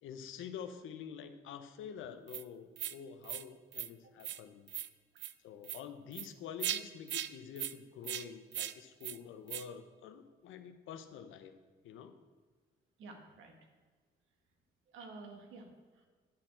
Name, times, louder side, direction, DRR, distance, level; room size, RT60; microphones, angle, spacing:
voice 1, 0.0-4.7 5.4-11.5 11.8-12.2, left 7 dB, 85° left, 8 dB, 0.9 m, -47 dB
noisy hat loop, 2.3-2.4 2.8-2.9 3.2-3.4 3.7-3.9 4.2-4.4 4.7-4.9 5.2-5.3 5.6-5.8 6.1-6.3 6.6-6.8 7.1-7.3 7.6-7.7 8.0-8.2 8.5-8.7 9.0-9.2 9.5-9.6, right 12 dB, 65° right, 0.5 m, -38 dB
voice 2, 13.0-13.5 14.9-16.1, right 3 dB, 80° right, 3 dB, 1.7 m, -51 dB
10.5 x 4.4 x 7.6 m, 1.4 s
cardioid pair, 90°, 20 cm